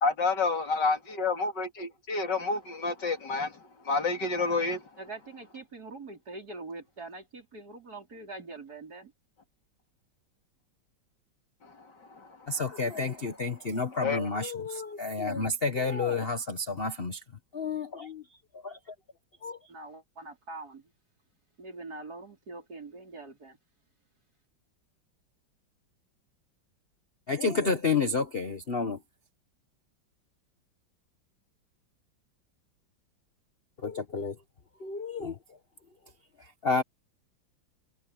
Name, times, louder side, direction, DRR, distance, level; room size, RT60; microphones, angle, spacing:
voice 1, 0.0-4.9 11.6-12.6 14.0-14.3, left 3 dB, 60° left, 3.1 m, -30 dB
voice 2, 5.0-9.1 19.7-20.9 21.6-23.6, right 3 dB, 50° right, 4.9 m, -43 dB
voice 3, 12.5-17.2 17.5-18.2 18.5-18.9 19.4-19.6 27.3-29.0 33.8-34.4 34.8-35.4 36.4-36.8, left 4 dB, 35° left, 1.3 m, -30 dB
omnidirectional pair, 2.1 m